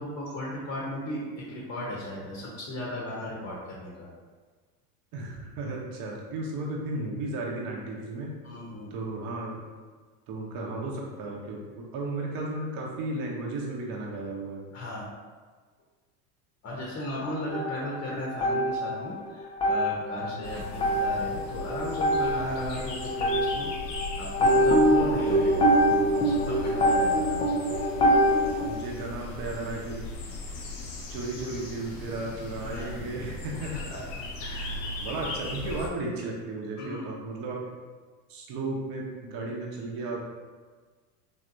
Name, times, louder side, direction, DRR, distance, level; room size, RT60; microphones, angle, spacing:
voice 1, 0.0-4.1 8.4-8.9 14.7-15.1 16.6-23.7 24.2-27.5 32.6-33.3 33.7-35.2 36.8-37.0, left 1 dB, 30° left, -4 dB, 0.8 m, -36 dB
voice 2, 5.1-8.4 8.9-9.6 10.3-14.6 20.2-20.4 24.9-25.4 28.6-30.1 31.1-33.7 35.0-37.6 38.3-40.2, right 2 dB, 45° right, -2 dB, 0.9 m, -34 dB
sound 1, 17.5-19.2 19.5-28.7, equal, 15° left, 0.4 m, -25 dB
sound 2, 20.4-35.9, left 1 dB, 85° left, 0.8 m, -38 dB
3.4 x 2.7 x 2.6 m, 1.4 s
hypercardioid pair, 90°, 48 cm